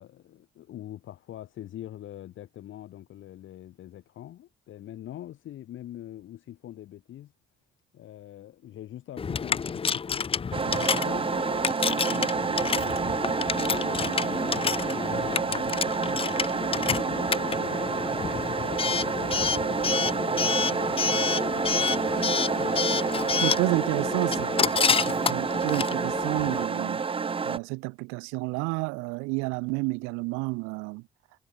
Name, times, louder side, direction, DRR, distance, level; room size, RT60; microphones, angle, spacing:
voice 1, 0.0-7.3 7.9-11.3 11.8-16.5 17.0-22.9 23.4-23.6 24.0-24.1 24.7-25.5, left 12 dB, 70° left, 2.3 m, -44 dB
Coin (dropping) / Alarm, 9.2-26.7, left 6 dB, 25° left, 0.5 m, -29 dB
sound 1, 10.5-27.6, right 5 dB, 25° right, 0.6 m, -29 dB
voice 2, 23.4-24.6 25.2-27.0 27.4-31.0, right 29 dB, 85° right, 0.5 m, -30 dB
hypercardioid pair, 45°, 21 cm